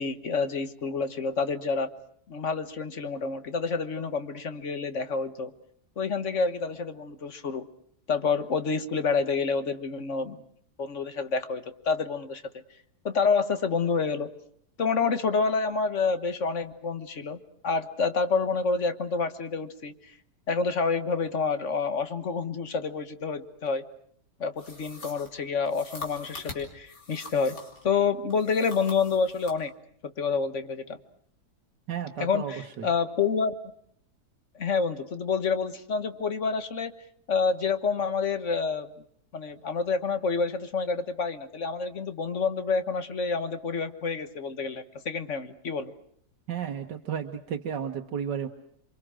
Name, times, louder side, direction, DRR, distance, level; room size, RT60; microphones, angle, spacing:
voice 1, 0.0-1.9 2.3-5.5 6.0-7.7 8.1-10.4 10.8-12.4 13.0-14.3 14.8-20.1 20.5-23.8 24.4-27.6 27.8-29.7 30.0-31.0 32.2-33.5 34.5-36.9 37.3-38.9 39.3-45.9, left 5 dB, 45° left, 10 dB, 1.6 m, -28 dB
sound 1, 24.6-27.9 28.3-29.6, left 3 dB, 75° left, 4.9 m, -43 dB
voice 2, 31.9-32.9 46.5-48.5, right 8 dB, 90° right, 3 dB, 1.9 m, -33 dB
28.0 x 24.5 x 6.3 m, 0.67 s
omnidirectional pair, 1.8 m